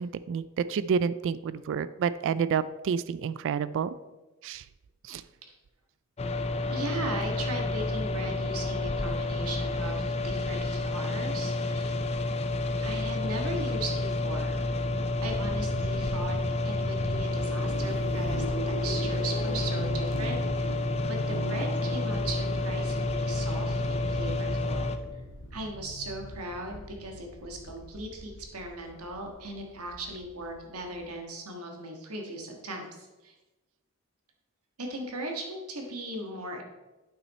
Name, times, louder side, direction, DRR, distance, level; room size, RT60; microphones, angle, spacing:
voice 1, 0.0-4.0 4.4-4.6 5.0-5.2, right 6 dB, 60° right, 16 dB, 0.3 m, -29 dB
sound 1, 6.2-25.0, left 2 dB, 30° left, 0.5 m, -30 dB
voice 2, 6.7-12.0 12.8-14.6 15.2-16.4 16.6-25.2 25.5-33.3 34.8-36.6, right 1 dB, 80° right, 2 dB, 1.6 m, -38 dB
sound 2, 14.9-31.1, right 1 dB, 60° left, 1.0 m, -41 dB
8.4 x 5.9 x 4.2 m, 1.1 s
head